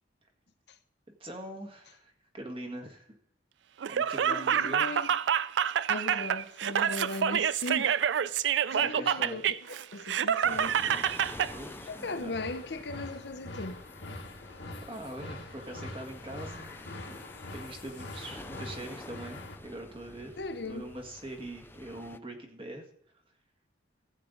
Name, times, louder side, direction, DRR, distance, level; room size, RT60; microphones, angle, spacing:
voice 1, 1.2-3.1 3.9-5.1 8.8-9.4 11.5-12.3 14.9-17.2 17.5-22.8, right 1 dB, 30° right, 1.7 m, -43 dB
Laughter, 3.8-11.5, right 8 dB, 75° right, 0.4 m, -27 dB
voice 2, 4.3-5.2 5.9-8.0 8.7-9.5 9.9-10.8 11.9-13.8 20.4-20.8, left 2 dB, 65° left, 0.9 m, -37 dB
sound 1, 10.4-22.2, left 2 dB, 10° left, 0.3 m, -48 dB
sound 2, 11.4-19.6, left 2 dB, 80° left, 1.7 m, -44 dB
15.0 x 8.7 x 3.9 m
head